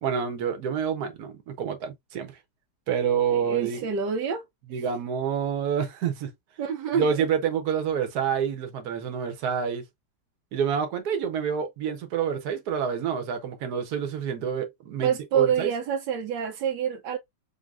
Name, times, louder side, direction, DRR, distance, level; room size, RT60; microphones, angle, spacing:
voice 1, 0.0-2.3 2.9-3.8 4.7-6.3 7.0-9.8 10.5-15.7, right 7 dB, 65° right, 1.4 m, -28 dB
voice 2, 3.3-4.4 6.6-7.3 15.0-17.2, right 7 dB, 80° right, 1.3 m, -27 dB
5.3 x 2.7 x 2.4 m
omnidirectional pair, 1.8 m